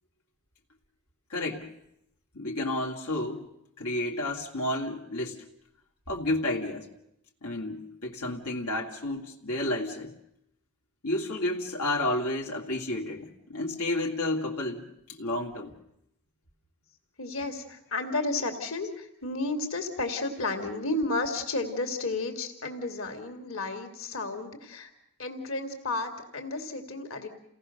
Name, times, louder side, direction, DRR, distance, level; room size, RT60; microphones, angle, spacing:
voice 1, 1.3-1.7 2.3-3.5 3.8-5.4 6.1-6.9 7.4-10.1 11.0-14.8 15.1-15.7 18.1-18.2, left 1 dB, 90° left, -1 dB, 2.5 m, -31 dB
voice 2, 17.2-24.9 25.2-27.3, left 2 dB, 65° left, 5 dB, 2.8 m, -32 dB
29.0 x 18.0 x 6.6 m, 0.80 s
head